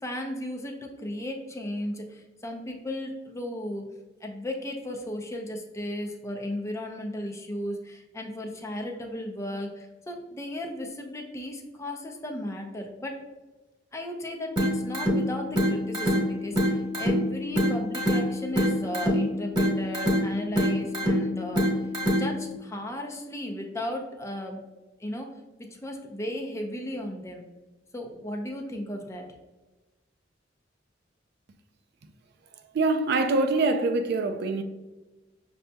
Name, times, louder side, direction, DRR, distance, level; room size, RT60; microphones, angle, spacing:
voice 1, 0.0-3.8 4.2-13.2 13.9-21.6 22.2-24.6 25.0-25.3 25.7-27.4 27.9-29.3, left 1 dB, 15° left, 0.5 m, -35 dB
sound 1, 14.6-22.6, equal, 25° right, 1.2 m, -26 dB
voice 2, 32.7-34.6, right 3 dB, 60° right, 0.4 m, -24 dB
6.3 x 2.7 x 2.2 m
head